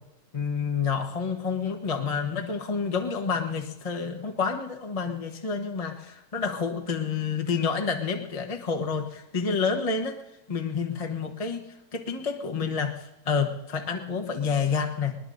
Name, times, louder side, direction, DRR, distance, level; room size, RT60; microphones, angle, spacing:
voice 1, 0.3-10.2 10.5-11.6 11.9-15.2, left 5 dB, 25° left, 3 dB, 1.0 m, -29 dB
21.0 x 20.5 x 2.6 m, 0.96 s
omnidirectional pair, 1.9 m